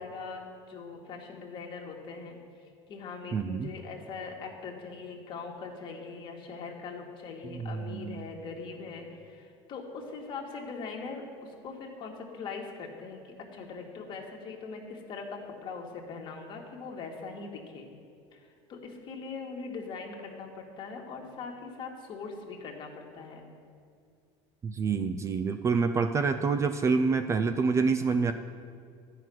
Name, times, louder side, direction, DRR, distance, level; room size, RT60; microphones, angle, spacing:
voice 1, 0.0-2.4 2.9-17.9 18.3-23.5 28.2-28.3, left 4 dB, 40° left, 0 dB, 1.9 m, -41 dB
voice 2, 3.3-3.7 7.5-8.2 24.6-28.3, right 5 dB, 20° right, 9 dB, 0.4 m, -27 dB
12.5 x 5.9 x 9.3 m, 2.3 s
cardioid pair, 145°, 13 cm